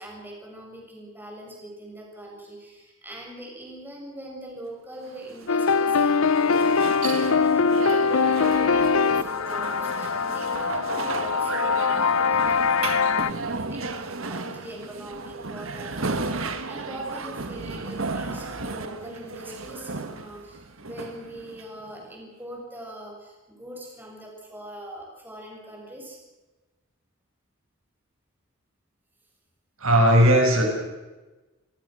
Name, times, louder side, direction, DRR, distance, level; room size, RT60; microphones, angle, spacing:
voice 1, 0.0-16.3 16.7-26.2, right 1 dB, 10° right, -1 dB, 7.5 m, -42 dB
sound 1, 5.0-22.1, right 3 dB, 70° right, 1.8 m, -34 dB
sound 2, 5.5-13.3, left 5 dB, 90° left, 0.8 m, -22 dB
voice 2, 29.8-30.6, equal, 85° right, 2 dB, 6.2 m, -17 dB
30.0 x 18.5 x 6.4 m, 1.2 s
head